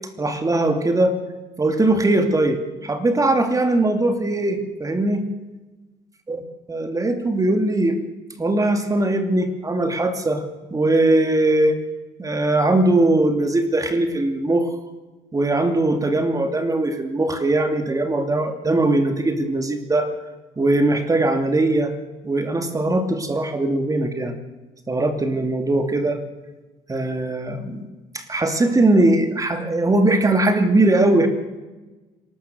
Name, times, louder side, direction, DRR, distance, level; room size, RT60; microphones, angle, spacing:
voice 1, 0.2-1.1 1.6-5.2 6.3-6.4 6.7-8.0 8.4-10.4 10.7-11.8 12.2-14.8 15.3-20.1 20.6-21.9 22.2-24.4 24.9-26.2 26.9-27.8 28.1-31.3, right 2 dB, 20° right, 7 dB, 2.8 m, -20 dB
26.5 x 12.5 x 7.9 m, 1.2 s
cardioid pair, 110°, 17 cm